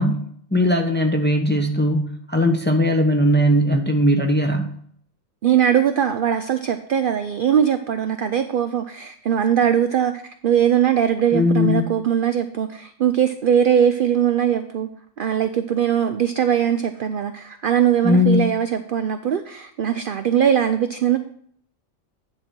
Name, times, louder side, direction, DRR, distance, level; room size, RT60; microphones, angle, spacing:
voice 1, 0.0-4.8 11.3-11.9 18.0-18.4, left 1 dB, 10° left, 3 dB, 0.6 m, -19 dB
voice 2, 5.4-14.9 15.2-21.2, right 9 dB, 65° right, 9 dB, 0.5 m, -20 dB
9.8 x 4.0 x 6.0 m, 0.64 s
omnidirectional pair, 1.4 m